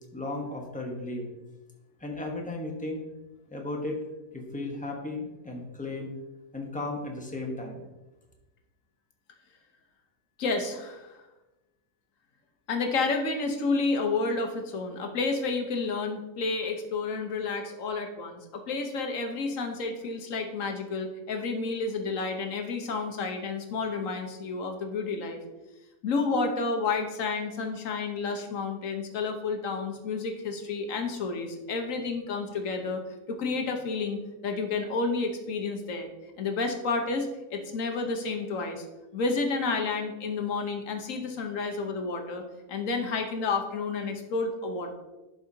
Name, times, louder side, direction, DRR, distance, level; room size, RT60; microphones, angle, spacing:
voice 1, 0.1-1.3 2.0-3.0 3.5-4.0 4.3-6.1 6.5-7.8, left 2 dB, 5° left, 0 dB, 0.8 m, -35 dB
voice 2, 10.4-11.2 12.7-25.4 26.0-33.0 33.3-34.2 34.4-36.1 36.4-38.8 39.1-42.4 42.7-44.9, left 4 dB, 60° left, 4 dB, 1.2 m, -30 dB
11.5 x 4.8 x 2.7 m, 1.1 s
omnidirectional pair, 1.7 m